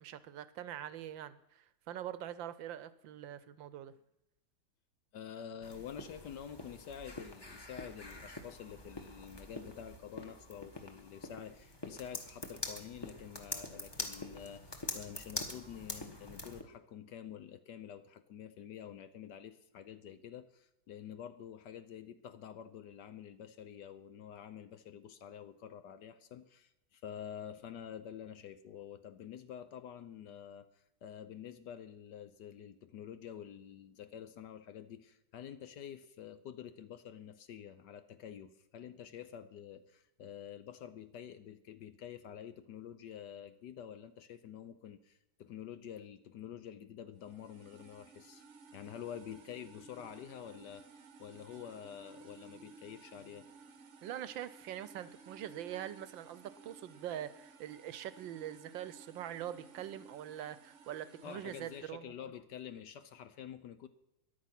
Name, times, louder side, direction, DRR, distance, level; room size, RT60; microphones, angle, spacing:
voice 1, 0.0-3.9 54.0-62.1, right 11 dB, 75° right, 15 dB, 1.4 m, -43 dB
voice 2, 5.1-48.4 48.7-53.5 61.2-63.9, left 9 dB, 65° left, 12 dB, 1.2 m, -48 dB
sound 1, 5.6-16.6, left 1 dB, 15° left, 1.2 m, -45 dB
sound 2, 47.2-61.9, right 4 dB, 45° right, 1.0 m, -57 dB
14.0 x 10.5 x 6.0 m, 0.90 s
omnidirectional pair, 2.2 m